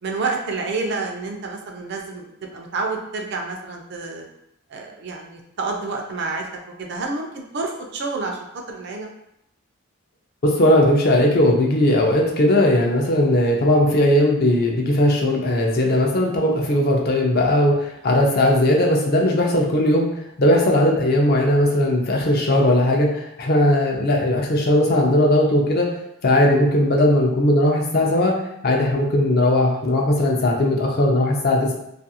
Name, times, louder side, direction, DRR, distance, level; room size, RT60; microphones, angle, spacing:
voice 1, 0.0-4.3 4.7-6.5 6.8-8.4 8.7-9.1 15.8-16.0, right 3 dB, 50° right, 2 dB, 0.4 m, -29 dB
voice 2, 10.4-20.1 20.4-25.9 26.2-28.3 28.6-31.7, left 1 dB, 45° left, 0 dB, 0.4 m, -18 dB
2.4 x 2.3 x 2.7 m, 0.81 s
head